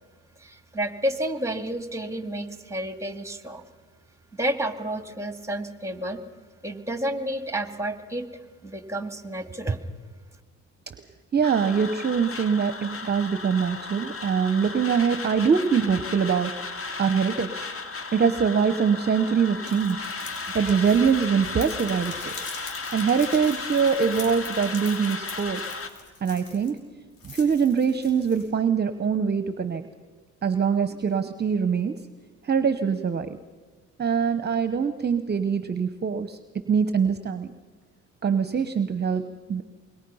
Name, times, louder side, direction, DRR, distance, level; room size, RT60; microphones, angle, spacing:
voice 1, 0.4-3.6 4.4-6.2 6.6-8.3 8.6-9.8, right 1 dB, 10° right, 8 dB, 2.1 m, -30 dB
voice 2, 11.3-17.7 18.1-20.1 20.5-22.3 22.9-25.6 26.2-26.8 27.2-29.8 30.4-31.9 32.4-33.4 34.0-36.4 36.7-37.5 38.2-39.2 39.5-39.6, right 6 dB, 35° right, 11 dB, 0.9 m, -23 dB
sound 1, 11.4-25.9, left 4 dB, 45° left, 2.3 m, -35 dB
sound 2, 19.7-26.8 27.2-28.5, left 4 dB, 90° left, 5.4 m, -43 dB
25.0 x 22.0 x 5.6 m, 1.4 s
cardioid pair, 90°, 30 cm